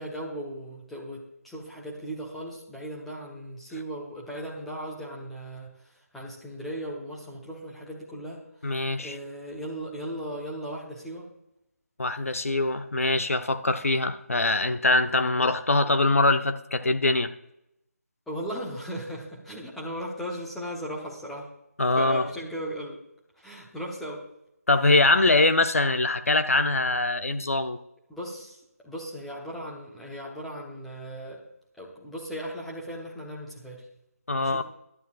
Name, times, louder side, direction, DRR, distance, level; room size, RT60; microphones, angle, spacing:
voice 1, 0.0-11.3 18.3-21.5 21.9-23.0 23.4-24.2 28.1-31.4 31.8-33.9 34.4-34.6, equal, ahead, -5 dB, 1.0 m, -37 dB
voice 2, 8.6-9.2 12.0-17.3 21.8-22.2 24.7-27.8 34.3-34.6, left 2 dB, 60° left, 9 dB, 0.9 m, -23 dB
16.0 x 11.0 x 2.4 m, 0.82 s
figure-of-eight pair, 160°, 9 cm